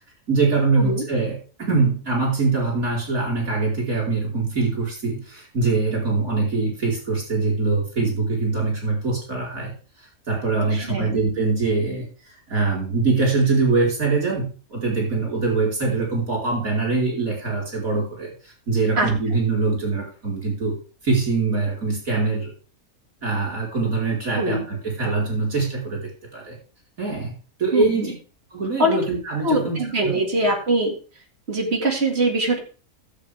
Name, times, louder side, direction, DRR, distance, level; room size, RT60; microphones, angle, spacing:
voice 1, 0.3-20.7 21.0-22.5 23.2-26.6 27.0-27.3 27.6-28.1 28.5-30.2, right 3 dB, 70° right, -2 dB, 4.9 m, -23 dB
voice 2, 10.7-11.1 19.0-19.1 24.4-24.6 27.7-28.1 28.8-29.0 29.4-30.9 31.5-32.6, right 1 dB, 45° right, 0 dB, 2.6 m, -22 dB
15.5 x 7.7 x 3.5 m, 0.36 s
omnidirectional pair, 1.5 m